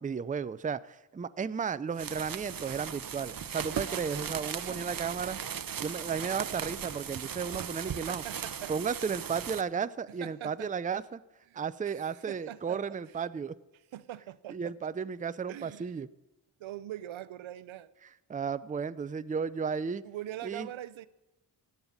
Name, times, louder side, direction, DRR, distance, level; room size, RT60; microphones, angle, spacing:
voice 1, 0.0-5.4 5.8-8.2 8.7-11.2 11.5-13.5 14.5-16.1 18.3-20.0 20.4-20.7, right 6 dB, 20° right, 0.4 m, -34 dB
sound 1, 1.9-9.6, right 8 dB, 45° right, 0.8 m, -38 dB
voice 2, 7.6-8.7 10.2-10.7 11.5-13.2 13.9-14.9 15.5-16.0 16.6-17.9 20.0-21.1, right 12 dB, 80° right, 0.7 m, -43 dB
15.0 x 5.6 x 9.6 m
cardioid pair, 50°, 47 cm